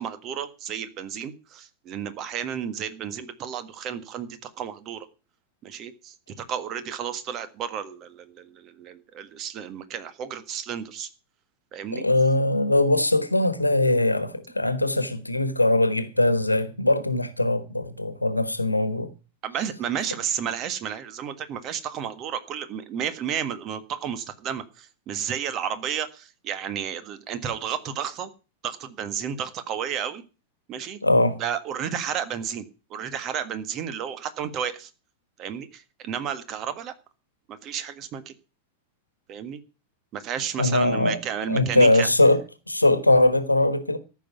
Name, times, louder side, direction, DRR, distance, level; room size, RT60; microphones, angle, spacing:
voice 1, 0.0-5.1 5.6-11.1 11.7-12.0 19.4-28.3 28.6-30.2 30.7-31.0 31.4-32.6 32.9-34.9 35.4-36.9 37.5-38.3 39.3-39.6 40.1-42.1, right 8 dB, 35° right, 1.6 m, -32 dB
voice 2, 11.9-19.1 31.0-31.4 40.6-41.2 41.5-42.4 42.7-44.0, left 2 dB, 85° left, 1.4 m, -21 dB
14.0 x 6.0 x 9.1 m
figure-of-eight pair, 90°, 0 cm